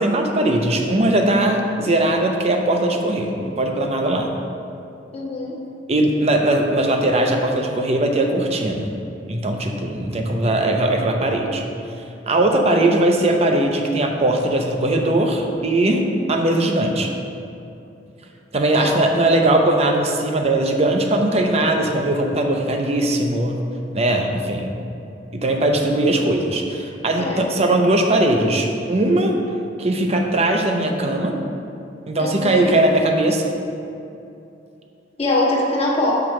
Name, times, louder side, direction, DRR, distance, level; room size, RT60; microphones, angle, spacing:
voice 1, 0.0-4.3 5.9-8.9 9.3-11.6 12.3-17.1 18.5-23.6 23.9-24.7 25.3-29.3 29.8-31.3 32.1-33.5, right 1 dB, 35° right, 3 dB, 0.7 m, -19 dB
voice 2, 5.1-5.5 18.8-18.9 27.2-27.5 32.2-32.7 35.2-36.1, left 2 dB, 35° left, -4 dB, 1.2 m, -22 dB
5.9 x 4.5 x 6.3 m, 2.7 s
head